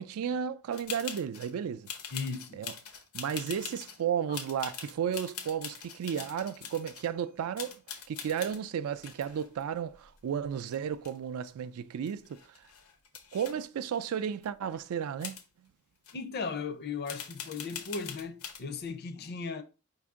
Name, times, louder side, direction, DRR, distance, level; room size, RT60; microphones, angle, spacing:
voice 1, 0.0-1.9 2.5-2.7 3.1-12.4 13.3-15.4, right 8 dB, 80° right, 0.3 m, -33 dB
sound 1, 0.7-1.5 1.9-4.0 4.3-7.1 7.6-8.6 9.0-10.5 10.7-11.5 11.8-11.9 12.1-13.5 14.4-14.5 15.2-15.4 16.0-16.1 17.1-18.6, left 7 dB, 90° left, 0.8 m, -43 dB
voice 2, 2.1-2.6 16.1-19.6, left 5 dB, 45° left, 0.5 m, -37 dB
5.0 x 2.6 x 3.5 m
head